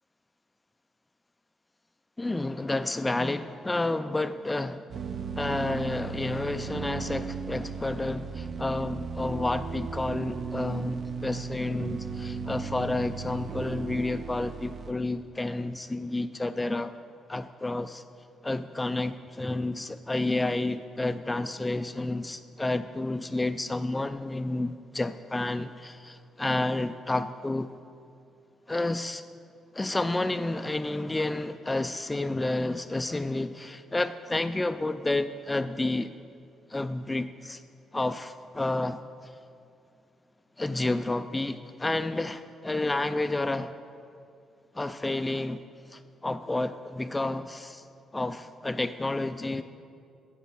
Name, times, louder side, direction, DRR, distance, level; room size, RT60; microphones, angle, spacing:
voice 1, 2.2-4.8 5.3-16.9 17.3-18.0 18.4-27.7 28.7-29.2 29.7-36.1 36.7-37.6 37.9-39.3 40.6-43.7 44.7-45.6 45.9-47.8 48.1-49.6, left 2 dB, 15° left, 10 dB, 0.3 m, -30 dB
sound 1, 4.9-14.9, right 5 dB, 50° right, 0.5 m, -36 dB
9.1 x 8.1 x 6.3 m, 2.5 s
cardioid pair, 90°, 0 cm